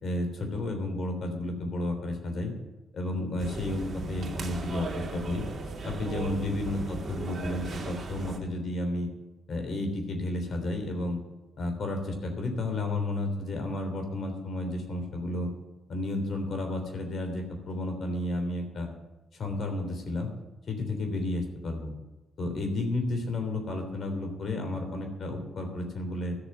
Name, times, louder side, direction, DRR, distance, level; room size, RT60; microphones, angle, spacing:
voice 1, 0.0-2.5 2.9-5.4 5.8-9.1 9.5-11.2 11.6-15.5 15.9-18.9 19.3-20.3 20.7-21.9 22.4-26.4, left 2 dB, 60° left, 5 dB, 3.3 m, -32 dB
sound 1, 3.4-8.4, right 3 dB, 50° right, 2.3 m, -37 dB
13.5 x 6.8 x 9.6 m, 1.1 s
supercardioid pair, 60°, 0 cm